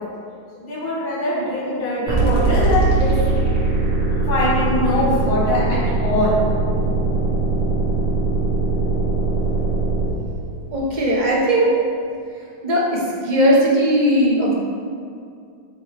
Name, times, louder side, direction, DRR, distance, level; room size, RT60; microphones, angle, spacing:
voice 1, 0.5-3.1 4.3-6.4, left 1 dB, 80° left, -8 dB, 2.7 m, -22 dB
sound 1, 2.1-10.1, right 3 dB, 85° right, 2.4 m, -20 dB
voice 2, 10.7-11.7 12.6-13.0 13.2-14.5, equal, 50° right, -4 dB, 0.5 m, -17 dB
8.8 x 3.1 x 4.4 m, 2.3 s
omnidirectional pair, 2.3 m